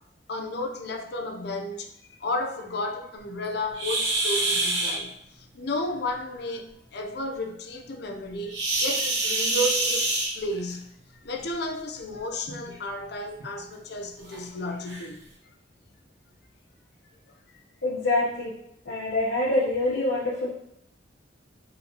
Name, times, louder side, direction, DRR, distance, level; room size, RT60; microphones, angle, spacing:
voice 1, 0.3-1.9 2.2-10.9 11.2-15.2 17.5-17.6, left 1 dB, 65° left, 0.6 m, -33 dB
sound 1, 3.7-5.0 8.5-10.7 12.0-12.1 12.7-12.8 13.4-13.5 14.3-14.4 14.9-15.0, right 2 dB, 75° right, 1.1 m, -26 dB
voice 2, 17.8-18.5 18.9-20.5, left 2 dB, 90° left, 1.0 m, -25 dB
4.2 x 3.9 x 2.8 m
head